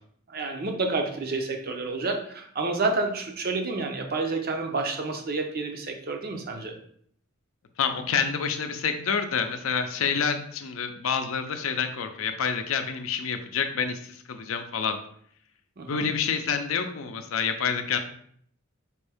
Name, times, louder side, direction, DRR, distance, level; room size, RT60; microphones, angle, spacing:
voice 1, 0.3-6.8 15.8-16.1, right 3 dB, 45° right, 4 dB, 0.6 m, -29 dB
voice 2, 7.8-15.0 15.9-18.0, left 6 dB, 80° left, 7 dB, 0.5 m, -28 dB
4.4 x 2.6 x 3.4 m, 0.63 s
head